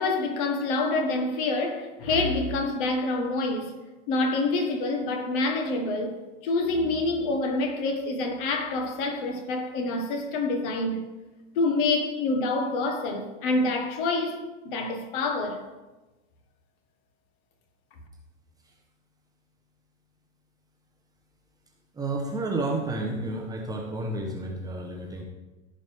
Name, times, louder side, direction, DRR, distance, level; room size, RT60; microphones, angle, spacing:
voice 1, 0.0-3.7 4.1-6.2 6.4-11.0 11.5-15.6, left 2 dB, 50° left, 1.5 m, -27 dB
voice 2, 21.9-25.2, right 2 dB, 10° right, 0.9 m, -31 dB
15.0 x 5.1 x 3.5 m
hypercardioid pair, 140°, 35 cm